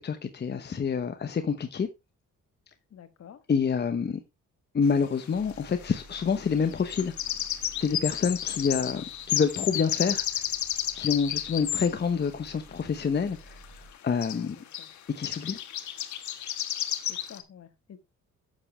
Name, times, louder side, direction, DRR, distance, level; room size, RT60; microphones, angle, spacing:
voice 1, 0.0-1.9 3.5-4.2 4.7-7.1 7.8-10.4 11.0-14.6 15.1-15.6, left 6 dB, 35° left, 1.0 m, -27 dB
voice 2, 2.9-3.4 8.8-9.0 14.3-14.9 17.1-18.0, left 8 dB, 55° left, 1.6 m, -49 dB
sound 1, 4.8-4.9 6.7-11.9 13.6-13.7 13.9-14.0 14.2-14.4 14.7-14.9 15.2-17.4, left 11 dB, 70° left, 1.4 m, -32 dB
sound 2, 5.3-13.9, right 1 dB, 10° right, 5.5 m, -53 dB
11.0 x 7.5 x 3.3 m
cardioid pair, 90°, 30 cm